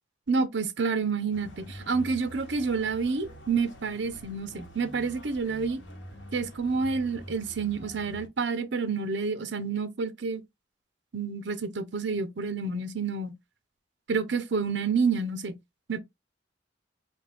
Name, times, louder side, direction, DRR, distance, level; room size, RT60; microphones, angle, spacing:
voice 1, 0.3-5.8 6.3-10.4 11.1-13.3 14.1-15.6 15.9-16.0, right 4 dB, 65° right, 0.7 m, -29 dB
sound 1, 1.3-8.3, equal, 70° left, 1.1 m, -46 dB
4.5 x 2.7 x 3.4 m
head